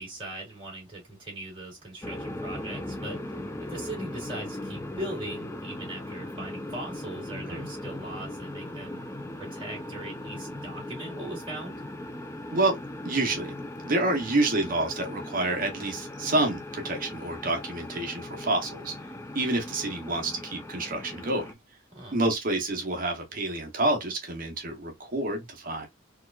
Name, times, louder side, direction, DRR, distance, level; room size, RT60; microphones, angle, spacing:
voice 1, 0.0-9.0 9.4-11.8 21.9-22.2, right 1 dB, 25° right, 2.6 m, -40 dB
sound 1, 2.0-21.5, left 1 dB, 15° left, 0.4 m, -39 dB
voice 2, 13.0-13.6 13.9-18.9 19.3-21.4 22.1-25.9, right 2 dB, 45° right, 0.9 m, -28 dB
4.3 x 2.5 x 2.3 m
head